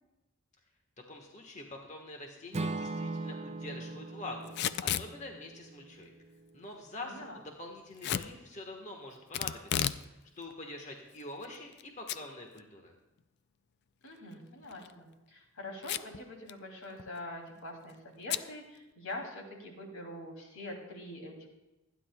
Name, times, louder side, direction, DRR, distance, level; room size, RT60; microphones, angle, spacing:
voice 1, 1.1-6.1 6.5-12.9, left 2 dB, 35° left, 2 dB, 1.3 m, -45 dB
Acoustic guitar / Strum, 2.5-6.6, right 2 dB, 30° right, 0.4 m, -40 dB
Packing tape duct tape / Tearing, 4.5-5.1 8.0-8.3 9.3-10.0 10.4-10.5 11.2-11.8 12.1-12.2 12.6-12.7 14.6-14.9 15.8-16.2 16.5-16.6 16.8-17.2 18.3-18.5, left 10 dB, 50° left, 0.3 m, -33 dB
voice 2, 7.0-7.4 14.0-21.5, left 1 dB, 90° left, 1 dB, 2.7 m, -44 dB
24.5 x 10.0 x 2.2 m, 1.0 s
head